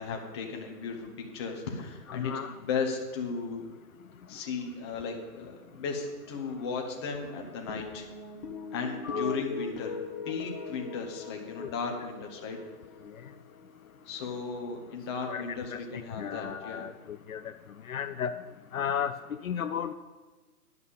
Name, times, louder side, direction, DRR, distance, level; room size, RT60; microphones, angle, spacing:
voice 1, 0.0-3.7 4.3-8.1 8.7-9.9 10.2-12.6 14.1-16.9, left 5 dB, 15° left, 1 dB, 1.0 m, -35 dB
voice 2, 2.1-2.5 9.0-9.4 11.6-11.7 15.3-15.8 16.2-17.5 17.9-18.3 18.7-19.9, left 8 dB, 60° left, 10 dB, 0.6 m, -34 dB
sound 1, 7.7-14.3, left 4 dB, 40° left, 1.2 m, -40 dB
11.0 x 5.7 x 8.2 m, 1.2 s
hypercardioid pair, 160°, 46 cm